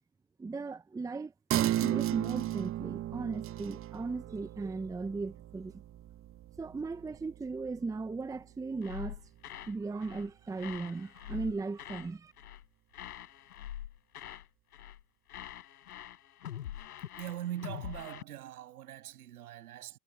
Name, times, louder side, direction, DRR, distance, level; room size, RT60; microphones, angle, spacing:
voice 1, 0.4-5.8 6.6-9.2 9.7-12.3, right 4 dB, 5° right, 0.9 m, -37 dB
sound 1, 1.5-8.5 8.9-9.0, right 13 dB, 30° right, 1.5 m, -35 dB
sound 2, 8.8-9.8 10.0-10.3 10.6-12.1 12.4-12.7 12.9-14.5 14.7-15.0 15.3-18.2, left 11 dB, 70° left, 6.3 m, -44 dB
voice 2, 17.2-20.0, right 12 dB, 70° right, 6.6 m, -41 dB
hypercardioid pair, 110°, 46 cm